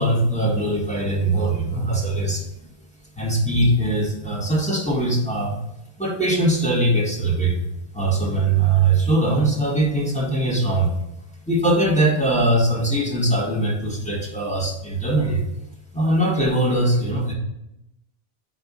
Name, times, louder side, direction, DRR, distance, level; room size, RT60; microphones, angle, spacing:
voice 1, 0.0-2.4 3.1-5.6 6.0-7.7 7.9-10.9 11.5-15.4 15.9-17.3, right 2 dB, 5° left, -2 dB, 1.4 m, -21 dB
4.7 x 4.5 x 5.3 m, 0.84 s
omnidirectional pair, 1.1 m